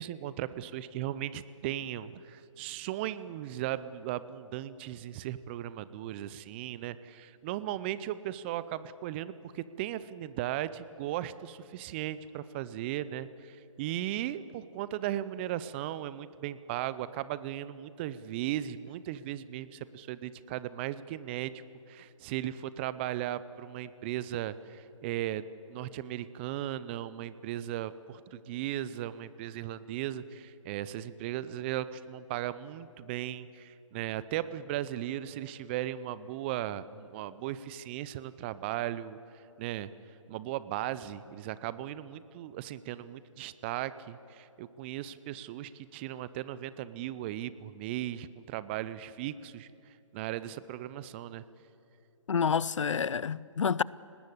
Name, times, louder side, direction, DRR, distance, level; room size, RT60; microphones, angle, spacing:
voice 1, 0.0-21.6 21.9-39.2 39.6-39.9 40.3-49.7 50.1-51.4, right 12 dB, 20° right, 0.6 m, -37 dB
voice 2, 52.3-53.8, left 6 dB, 70° left, 0.6 m, -28 dB
29.5 x 19.0 x 8.5 m
figure-of-eight pair, 140°, 17 cm